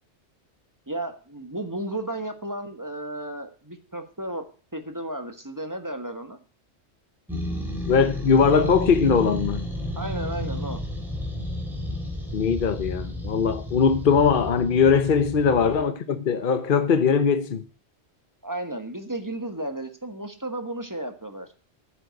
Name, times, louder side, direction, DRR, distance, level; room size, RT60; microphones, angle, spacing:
voice 1, 0.9-4.4 4.7-6.4 9.9-10.8 15.5-15.7 18.4-21.5, right 1 dB, 15° right, 1.4 m, -33 dB
sound 1, 7.3-15.8, left 1 dB, ahead, 3.5 m, -32 dB
voice 2, 7.9-9.7 12.3-17.6, left 6 dB, 55° left, 1.0 m, -20 dB
10.0 x 7.8 x 7.9 m
omnidirectional pair, 1.1 m